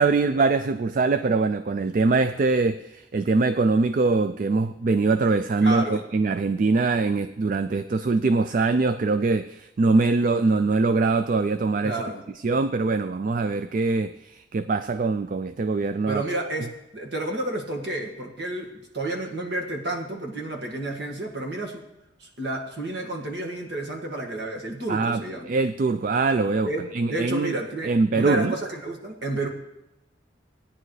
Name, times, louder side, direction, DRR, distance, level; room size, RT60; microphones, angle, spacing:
voice 1, 0.0-12.0 12.4-16.2 24.9-27.5 27.8-28.6, right 3 dB, 45° right, 11 dB, 0.3 m, -23 dB
voice 2, 5.6-6.0 11.8-12.2 16.1-21.8 22.2-25.5 26.6-29.5, right 2 dB, 60° right, 0 dB, 1.8 m, -31 dB
17.5 x 9.9 x 3.2 m, 0.92 s
head